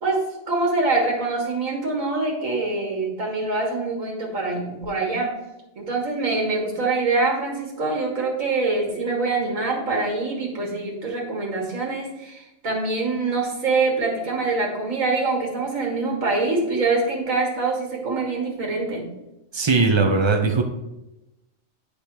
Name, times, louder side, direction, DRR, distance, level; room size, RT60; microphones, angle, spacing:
voice 1, 0.0-5.4 5.8-19.1, right 3 dB, 85° right, -1 dB, 2.1 m, -24 dB
voice 2, 19.5-20.6, right 4 dB, 30° right, 4 dB, 0.6 m, -19 dB
9.9 x 3.5 x 4.5 m, 0.95 s
omnidirectional pair, 1.4 m